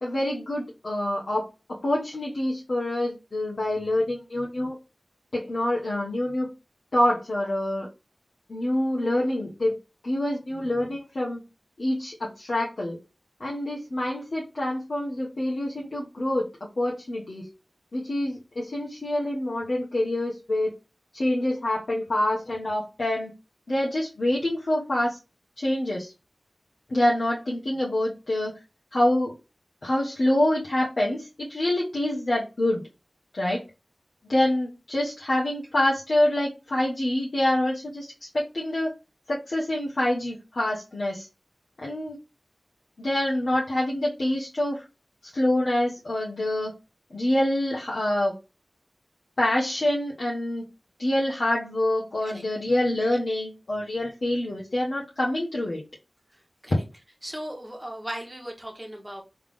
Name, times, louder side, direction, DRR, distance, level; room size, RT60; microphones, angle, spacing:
voice 1, 0.0-4.8 5.3-6.5 6.9-7.9 8.5-9.8 10.0-11.4 11.8-13.0 13.4-17.5 17.9-20.7 21.1-23.3 23.7-25.2 25.6-26.1 26.9-28.5 28.9-29.3 29.8-32.8 33.3-33.6 34.3-38.9 39.3-41.3 41.8-42.2 43.0-44.8 45.2-46.7 47.1-48.3 49.4-50.6 51.0-55.8, left 1 dB, 75° left, -5 dB, 1.3 m, -26 dB
voice 2, 56.3-56.7 57.2-59.2, equal, 15° right, 1 dB, 1.5 m, -37 dB
3.6 x 3.3 x 3.5 m, 0.27 s
wide cardioid pair, 60°, 0 cm